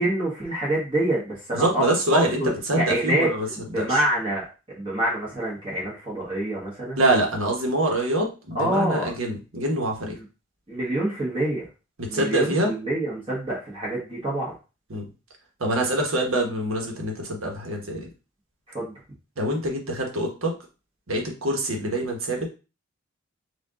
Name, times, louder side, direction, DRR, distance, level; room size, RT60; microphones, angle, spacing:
voice 1, 0.0-1.8 2.1-2.5 2.8-3.3 3.6-7.0 8.5-9.1 10.7-11.6 12.1-14.5 18.7-18.9, right 1 dB, 25° right, -6 dB, 1.3 m, -26 dB
voice 2, 1.5-4.0 7.0-10.2 12.0-12.7 14.9-15.1 15.6-18.1 19.4-20.5 21.1-22.5, right 1 dB, 85° right, 1 dB, 1.2 m, -25 dB
4.5 x 2.5 x 3.7 m, 0.32 s
head